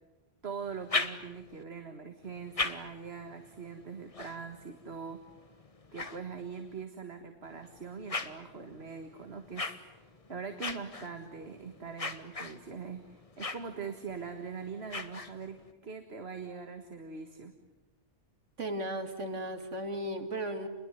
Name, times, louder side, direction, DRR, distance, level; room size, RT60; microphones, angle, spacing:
voice 1, 0.4-5.3 5.9-17.5, right 5 dB, 60° right, 6 dB, 2.0 m, -42 dB
sound 1, 0.6-1.6 2.2-6.8 7.4-15.7, left 3 dB, 30° left, 1.4 m, -41 dB
voice 2, 18.6-20.7, right 1 dB, 80° right, 7 dB, 2.6 m, -35 dB
29.0 x 21.5 x 9.4 m, 1.1 s
omnidirectional pair, 1.2 m